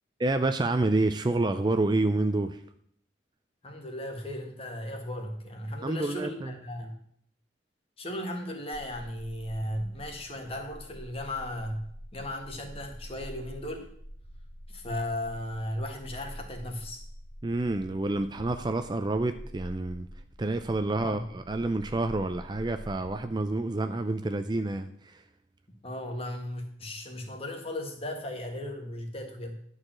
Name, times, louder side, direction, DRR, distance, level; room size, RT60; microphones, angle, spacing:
voice 1, 0.2-2.6 5.8-6.5 17.4-20.1 20.4-25.2, right 2 dB, 25° right, 9 dB, 0.4 m, -28 dB
voice 2, 3.6-6.9 8.0-13.9 14.7-17.0 20.9-21.2 25.8-29.5, left 1 dB, 30° left, 3 dB, 1.6 m, -36 dB
sound 1, 8.7-23.6, equal, 85° left, 2.6 m, -46 dB
11.0 x 4.9 x 7.4 m, 0.66 s
head